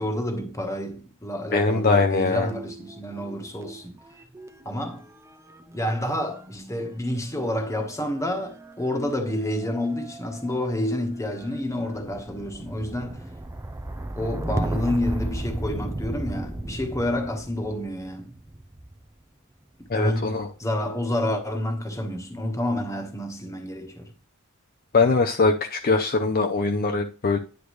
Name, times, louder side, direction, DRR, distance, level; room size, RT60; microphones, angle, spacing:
voice 1, 0.0-3.9 4.6-5.1 5.7-13.3 14.1-18.3 19.8-24.1, left 1 dB, 15° left, 1.3 m, -29 dB
voice 2, 1.5-2.5 19.9-20.5 24.9-27.4, left 3 dB, 45° left, 0.6 m, -22 dB
sound 1, 2.4-3.8 4.1-19.1 19.9-20.4, right 1 dB, 15° right, 0.6 m, -35 dB
10.0 x 6.6 x 3.2 m
head